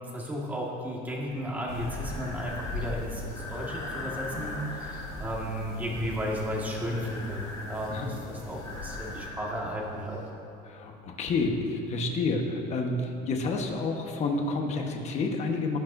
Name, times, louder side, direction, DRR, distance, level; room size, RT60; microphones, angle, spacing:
voice 1, 0.1-8.1 8.5-10.2, equal, 10° right, -3 dB, 1.8 m, -34 dB
Breathing, 1.3-10.3, left 2 dB, 20° left, 1.6 m, -42 dB
sound 1, 1.7-9.3, left 3 dB, 80° left, 2.9 m, -40 dB
voice 2, 10.6-15.8, left 3 dB, 35° left, 2 dB, 1.2 m, -29 dB
18.5 x 10.5 x 2.7 m, 2.8 s
cardioid pair, 160°, 19 cm